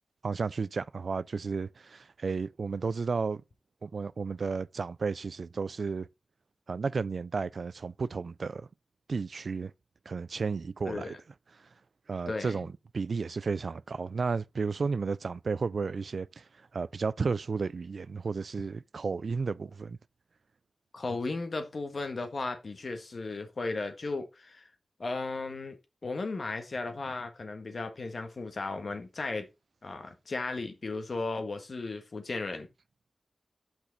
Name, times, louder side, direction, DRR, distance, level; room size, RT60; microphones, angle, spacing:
voice 1, 0.2-3.4 3.8-6.1 6.7-8.7 9.1-9.7 10.1-11.2 12.1-16.4 16.7-20.0, right 4 dB, 75° right, 0.3 m, -33 dB
voice 2, 10.8-11.2 12.3-12.7 20.9-24.7 25.0-25.8 26.0-29.5 29.8-32.7, left 3 dB, 65° left, 1.5 m, -35 dB
6.0 x 5.9 x 4.0 m
cardioid pair, 55°, 0 cm